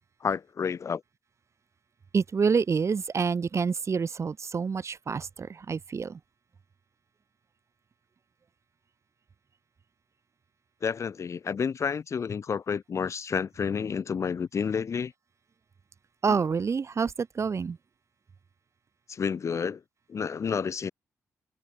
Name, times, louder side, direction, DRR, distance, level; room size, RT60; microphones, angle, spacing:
voice 1, 0.2-1.0 10.8-15.1 19.1-19.8 20.1-20.9, left 6 dB, 50° left, 0.6 m, -30 dB
voice 2, 2.1-6.2 16.2-17.8, right 5 dB, 50° right, 1.8 m, -27 dB
cardioid pair, 70°, 6 cm